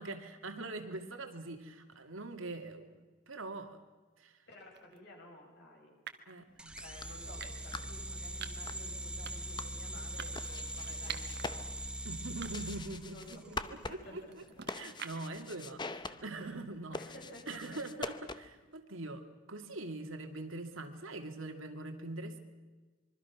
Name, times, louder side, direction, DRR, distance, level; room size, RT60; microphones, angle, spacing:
voice 1, 0.0-3.8 4.2-4.4 6.3-6.8 12.0-14.4 14.7-17.0 17.5-22.4, right 2 dB, 75° right, 6 dB, 2.4 m, -43 dB
voice 2, 4.5-5.9 6.8-11.7 13.1-14.4 14.6-15.2 16.9-17.8, left 1 dB, 55° left, -1 dB, 8.0 m, -53 dB
sound 1, 4.8-5.0 6.1-6.4 7.4-7.8 8.4-8.7 9.2-9.6 10.2-11.5 11.9-12.0 12.4-12.9 13.2-15.4, right 8 dB, 55° right, 1.5 m, -47 dB
sound 2, 6.6-18.7, left 3 dB, 20° left, 0.8 m, -46 dB
sound 3, 6.6-13.7, right 1 dB, 5° right, 1.0 m, -42 dB
25.5 x 23.5 x 6.0 m, 1.3 s
head